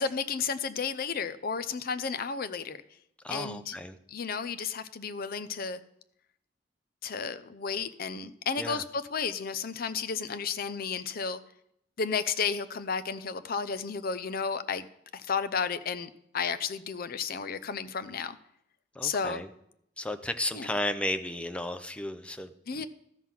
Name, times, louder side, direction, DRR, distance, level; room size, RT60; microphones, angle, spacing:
voice 1, 0.0-2.8 3.3-3.8 4.1-5.8 7.0-11.4 12.0-14.9 15.1-18.4 19.0-19.4 20.5-20.7 22.7-22.9, left 5 dB, 55° left, 13 dB, 0.6 m, -32 dB
voice 2, 3.2-4.0 8.6-8.8 18.9-19.5 20.0-22.9, left 1 dB, 5° left, 8 dB, 0.6 m, -34 dB
13.5 x 5.6 x 6.0 m, 0.76 s
head